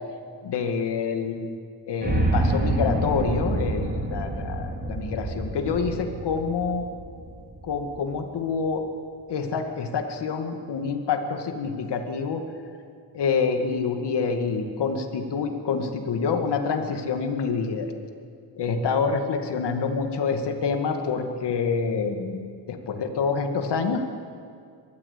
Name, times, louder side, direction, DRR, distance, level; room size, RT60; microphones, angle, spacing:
voice 1, 0.4-1.5 1.9-6.9 7.6-8.9 9.3-12.4 13.1-17.9 18.6-24.0, left 5 dB, 65° left, 5 dB, 2.3 m, -27 dB
sound 1, 2.0-8.1, right 1 dB, 20° right, 3.7 m, -27 dB
22.0 x 14.0 x 8.6 m, 2.3 s
cardioid pair, 110°, 44 cm